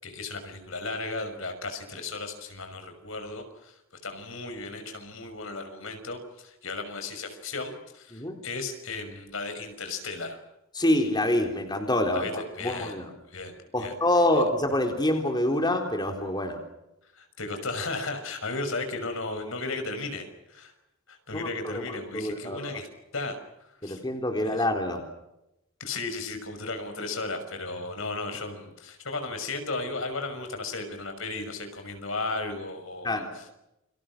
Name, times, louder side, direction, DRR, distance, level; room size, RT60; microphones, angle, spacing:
voice 1, 0.0-10.4 12.1-12.9 13.3-13.9 17.1-20.7 21.1-22.9 23.1-23.4 23.8-24.0 24.4-24.7 25.8-33.4, left 3 dB, 70° left, 7 dB, 5.8 m, -35 dB
voice 2, 10.7-13.1 13.7-16.6 21.3-22.8 23.8-25.0 33.0-33.3, left 1 dB, 20° left, 3 dB, 4.0 m, -26 dB
29.5 x 26.5 x 6.2 m, 0.88 s
head